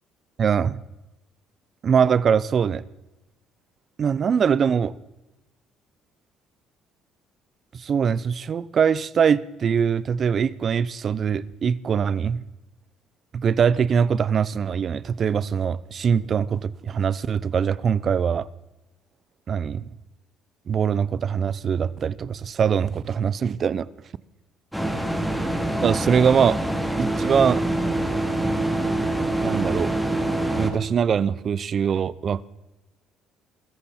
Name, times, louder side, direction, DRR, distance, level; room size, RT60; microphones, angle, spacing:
voice 1, 0.4-0.8 1.8-2.8 4.0-4.9 7.7-12.4 13.3-18.5 19.5-19.9 20.7-23.9 25.8-26.6 27.0-27.7 29.4-29.9 30.6-32.4, right 7 dB, 45° right, 0.6 m, -22 dB
sound 1, 24.7-30.7, right 1 dB, ahead, 2.8 m, -25 dB
22.0 x 14.0 x 4.3 m
cardioid pair, 100°, 0 cm